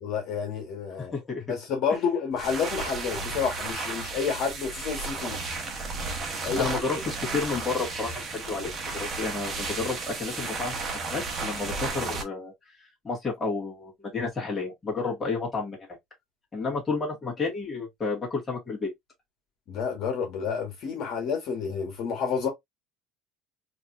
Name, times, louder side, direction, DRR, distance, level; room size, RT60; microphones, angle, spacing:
voice 1, 0.0-1.1 1.5-5.4 6.3-6.8 19.7-22.5, left 6 dB, 55° left, 1.4 m, -29 dB
voice 2, 1.0-1.4 6.4-10.7 11.1-12.5 13.0-15.9 16.5-18.9, left 4 dB, 15° left, 2.0 m, -31 dB
sound 1, 2.3-12.2, right 3 dB, 30° right, 1.2 m, -33 dB
3.9 x 3.0 x 2.5 m
cardioid pair, 135°, 0 cm